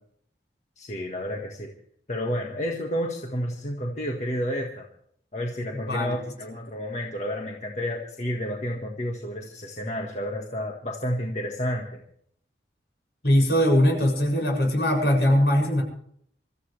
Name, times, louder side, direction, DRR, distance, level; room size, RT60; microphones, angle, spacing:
voice 1, 0.8-1.7 2.1-4.9 5.3-12.0, equal, 40° left, 0 dB, 1.7 m, -30 dB
voice 2, 13.2-15.8, equal, 70° left, 1 dB, 7.1 m, -21 dB
26.0 x 14.0 x 3.4 m, 0.66 s
head